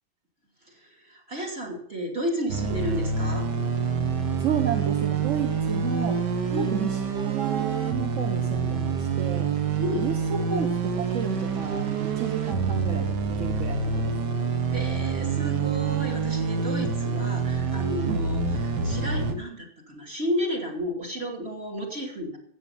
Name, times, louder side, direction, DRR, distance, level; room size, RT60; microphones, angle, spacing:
voice 1, 0.7-3.5 6.5-6.8 9.8-10.1 14.7-22.4, equal, 30° right, -1 dB, 3.0 m, -32 dB
sound 1, 2.5-19.3, right 5 dB, 65° right, 1.9 m, -27 dB
voice 2, 4.4-14.1 18.1-18.3, right 7 dB, 50° right, 4 dB, 1.2 m, -32 dB
15.0 x 8.7 x 5.6 m, 0.66 s
omnidirectional pair, 2.0 m